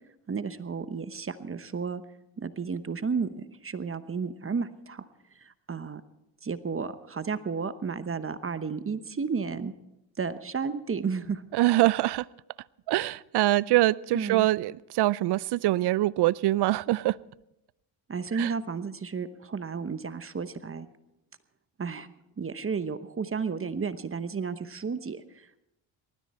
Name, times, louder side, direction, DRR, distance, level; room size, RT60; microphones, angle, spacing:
voice 1, 0.3-2.0 2.4-5.0 5.4-6.0 6.4-9.7 10.2-11.4 14.1-14.5 18.1-20.9 21.8-22.1 22.4-25.6, right 5 dB, 25° right, 12 dB, 1.0 m, -32 dB
voice 2, 11.5-12.3 12.9-17.2 18.3-18.5, right 16 dB, 55° right, 22 dB, 0.5 m, -24 dB
19.5 x 14.5 x 4.3 m, 0.87 s
supercardioid pair, 75°, 47 cm